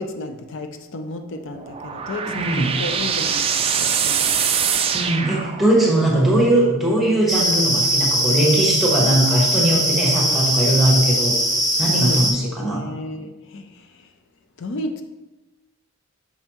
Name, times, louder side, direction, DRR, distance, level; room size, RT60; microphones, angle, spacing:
voice 1, 0.0-4.4 11.9-14.1 14.6-15.0, left 2 dB, 55° left, 7 dB, 0.5 m, -33 dB
sound 1, 1.5-6.0, right 7 dB, 25° right, 0.3 m, -23 dB
voice 2, 2.2-2.7 4.9-11.3 11.8-12.8, right 1 dB, ahead, -4 dB, 1.3 m, -19 dB
sound 2, 7.3-12.3, right 1 dB, 15° left, 1.0 m, -20 dB
6.3 x 5.3 x 3.0 m, 1.1 s
head